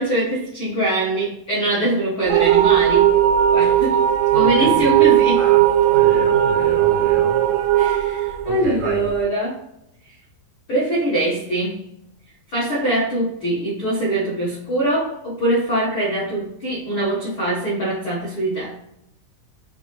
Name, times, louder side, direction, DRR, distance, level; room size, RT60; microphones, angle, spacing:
voice 1, 0.0-3.1 3.5-4.0 4.3-5.4 7.7-9.6 10.1-10.2 10.7-11.8 12.5-18.7, right 1 dB, 85° left, -9 dB, 1.1 m, -23 dB
sound 1, 2.3-9.2, right 11 dB, 90° right, 2.4 m, -17 dB
voice 2, 4.3-5.1 5.3-5.6 5.9-7.4 8.4-9.1, right 2 dB, 65° right, -2 dB, 4.0 m, -30 dB
8.8 x 3.7 x 3.3 m, 0.80 s
omnidirectional pair, 5.3 m